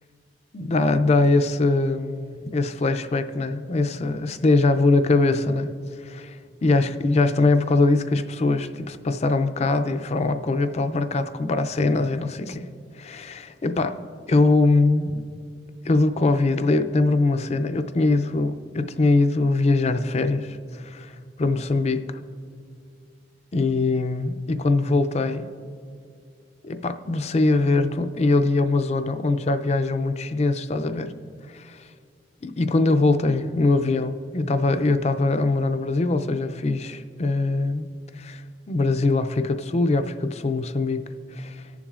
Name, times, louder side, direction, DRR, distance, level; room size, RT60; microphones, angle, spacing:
voice 1, 0.5-5.7 6.0-6.4 6.6-12.6 13.0-14.0 14.3-15.2 15.8-22.0 23.5-25.5 26.6-31.1 31.5-31.9 32.4-37.9 38.2-38.4 38.7-41.0 41.3-41.6, left 3 dB, 40° left, 0.4 m, -22 dB
19.5 x 7.1 x 2.4 m
head